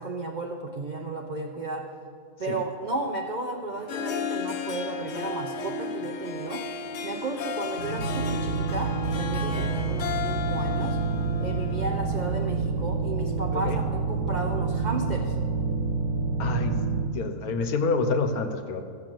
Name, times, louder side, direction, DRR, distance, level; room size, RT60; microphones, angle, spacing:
voice 1, 0.0-1.9 2.4-6.7 7.0-11.0 11.4-15.4, right 2 dB, 45° right, 2 dB, 0.6 m, -33 dB
Harp, 3.7-12.5, left 6 dB, 60° left, 0.8 m, -34 dB
sound 1, 7.7-17.0, right 4 dB, 65° right, 1.8 m, -28 dB
voice 2, 16.4-16.8 17.1-18.8, left 4 dB, 80° left, 7 dB, 1.4 m, -27 dB
14.0 x 5.6 x 7.6 m, 2.2 s
omnidirectional pair, 1.6 m